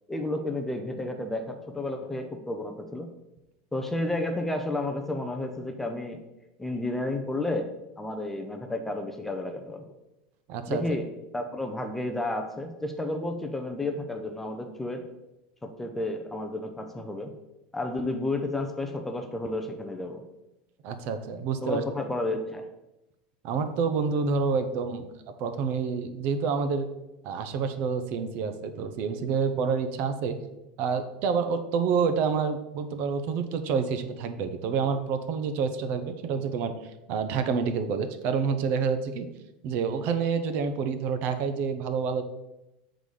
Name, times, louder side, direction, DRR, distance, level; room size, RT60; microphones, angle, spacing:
voice 1, 0.1-3.1 3.7-6.2 6.6-7.7 8.0-9.9 10.7-11.1 11.3-15.0 15.6-17.3 17.7-20.2 21.6-22.6, left 2 dB, 5° left, 5 dB, 0.5 m, -31 dB
voice 2, 10.5-10.8 20.8-21.8 23.4-25.1 25.4-26.9 27.2-30.4 30.8-36.7 37.1-39.3 39.6-42.2, right 5 dB, 45° right, 8 dB, 0.6 m, -28 dB
6.8 x 3.9 x 4.9 m, 0.94 s
supercardioid pair, 155°, 5 cm